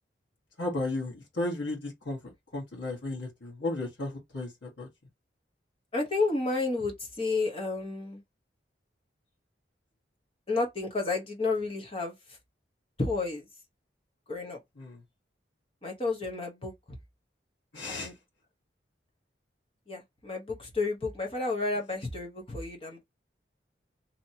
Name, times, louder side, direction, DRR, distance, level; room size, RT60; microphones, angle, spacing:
voice 1, 0.6-4.9 14.7-15.0 17.7-18.1, left 2 dB, 85° left, 1.3 m, -34 dB
voice 2, 5.9-8.2 10.5-12.1 13.0-13.4 14.3-14.6 15.8-16.7 17.9-18.1 19.9-23.0, left 3 dB, 30° left, 1.0 m, -31 dB
2.9 x 2.8 x 2.7 m
head